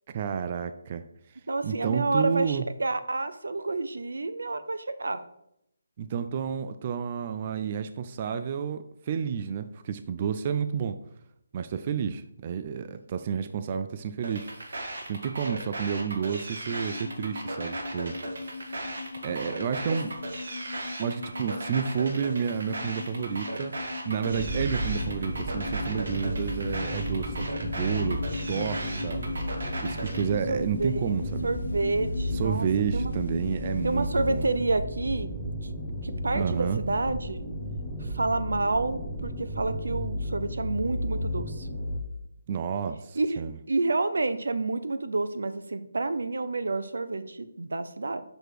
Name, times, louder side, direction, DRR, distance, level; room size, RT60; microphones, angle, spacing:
voice 1, 0.1-2.7 6.0-11.0 11.5-14.5 15.1-18.2 19.2-20.1 21.0-23.7 24.0-28.2 28.5-29.2 29.8-31.5 32.3-34.5 36.3-36.8 42.5-43.5, right 7 dB, 30° right, 10 dB, 0.3 m, -30 dB
voice 2, 1.5-5.2 19.9-20.0 30.5-31.1 31.4-32.7 32.9-33.1 33.8-35.8 36.0-37.4 38.0-41.7 43.2-43.4 43.7-48.2, right 2 dB, 80° right, 11 dB, 0.7 m, -29 dB
sound 1, 14.2-30.2, right 2 dB, 65° right, 1.6 m, -37 dB
sound 2, 16.7-34.6, left 3 dB, 70° left, 0.5 m, -39 dB
sound 3, 24.3-42.0, equal, ahead, 0.7 m, -33 dB
6.1 x 4.9 x 4.8 m, 0.79 s
hypercardioid pair, 170°, 0 cm